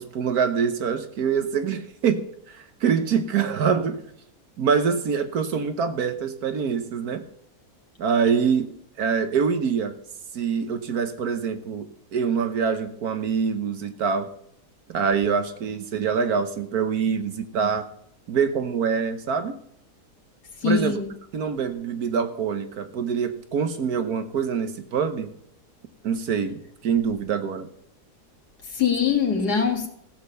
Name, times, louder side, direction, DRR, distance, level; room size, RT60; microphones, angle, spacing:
voice 1, 0.0-4.0 4.6-7.2 8.0-8.7 9.0-9.9 10.3-14.3 14.9-17.9 18.3-19.6 20.6-21.0 21.3-25.3 26.0-27.7, right 6 dB, 70° right, 9 dB, 1.4 m, -25 dB
voice 2, 20.6-21.1 28.7-29.9, left 6 dB, 75° left, 2 dB, 2.6 m, -22 dB
15.0 x 7.4 x 6.8 m, 0.69 s
omnidirectional pair, 1.7 m